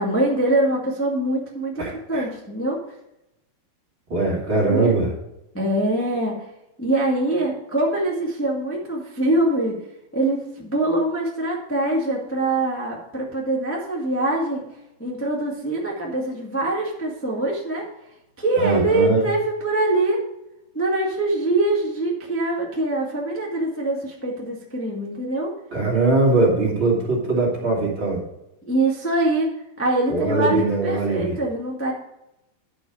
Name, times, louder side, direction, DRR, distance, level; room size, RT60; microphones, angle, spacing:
voice 1, 0.0-2.8 4.7-5.0 5.5-6.5 6.8-9.8 10.1-14.6 15.0-17.8 18.4-20.3 20.7-25.5 28.6-29.5 29.8-31.9, right 2 dB, 10° left, -3 dB, 0.8 m, -23 dB
voice 2, 1.8-2.3 4.1-5.1 18.6-19.3 25.7-28.2 30.1-31.4, right 2 dB, 35° right, -4 dB, 3.0 m, -21 dB
11.0 x 6.0 x 4.9 m, 0.87 s
omnidirectional pair, 4.4 m